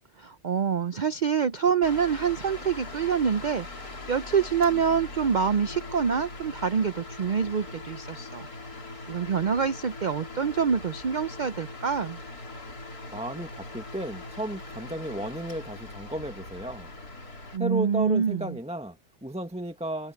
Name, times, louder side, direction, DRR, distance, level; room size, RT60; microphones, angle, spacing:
voice 1, 0.2-8.5 9.1-12.2 17.5-18.6, right 6 dB, 85° right, 0.4 m, -26 dB
sound 1, 1.8-17.6, left 2 dB, 85° left, 4.5 m, -41 dB
voice 2, 13.1-16.9 17.6-20.1, right 1 dB, 5° right, 1.0 m, -34 dB
omnidirectional pair, 1.6 m